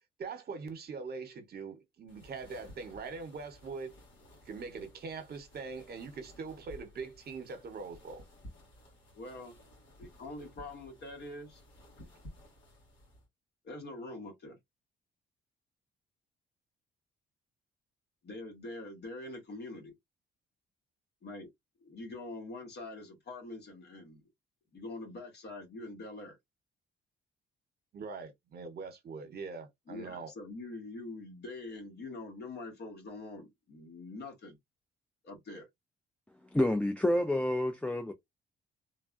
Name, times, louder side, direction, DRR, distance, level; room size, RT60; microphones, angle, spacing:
voice 1, 0.2-4.0 4.5-8.2 27.9-30.3, right 4 dB, 50° right, 1.0 m, -42 dB
sound 1, 2.1-13.3, left 1 dB, 75° left, 2.0 m, -55 dB
voice 2, 9.1-9.6 10.0-11.6 13.6-14.6 18.2-19.9 21.2-21.5 21.8-24.3 24.7-26.4 29.9-34.6 35.2-35.7, left 2 dB, 55° left, 1.3 m, -44 dB
voice 3, 36.5-38.1, left 1 dB, 5° left, 0.3 m, -28 dB
3.3 x 2.1 x 2.5 m
cardioid pair, 90°, 20 cm